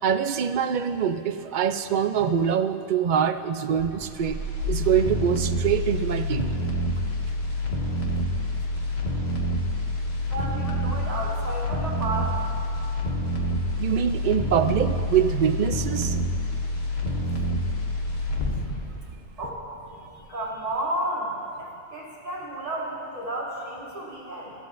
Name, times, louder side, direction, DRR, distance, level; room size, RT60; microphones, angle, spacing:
voice 1, 0.0-4.4 4.7-6.6 13.8-16.2, right 8 dB, 60° right, 8 dB, 0.5 m, -24 dB
sound 1, 3.8-19.9 20.2-20.3, left 1 dB, 55° left, 1.5 m, -27 dB
voice 2, 10.2-12.5 19.4-19.6 19.9-21.3 21.6-24.5, right 1 dB, 30° right, -8 dB, 3.5 m, -32 dB
25.5 x 13.0 x 2.5 m, 2.7 s
omnidirectional pair, 1.3 m